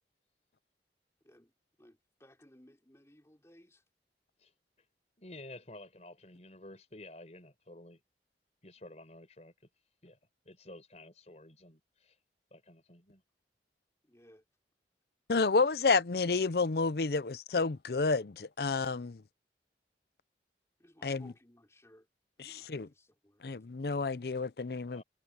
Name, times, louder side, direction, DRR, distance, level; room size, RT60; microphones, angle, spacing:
voice 1, 1.8-3.8 14.0-14.4 20.8-22.1 22.4-23.5, equal, 15° left, 4.1 m, -61 dB
voice 2, 4.4-4.9 5.2-8.0 8.6-9.7 10.0-10.2 10.4-12.2 12.5-13.2 24.9-25.0, left 1 dB, 40° left, 4.6 m, -52 dB
voice 3, 15.3-19.2 21.0-21.3 22.4-22.9 23.4-25.0, left 4 dB, 60° left, 0.6 m, -30 dB
head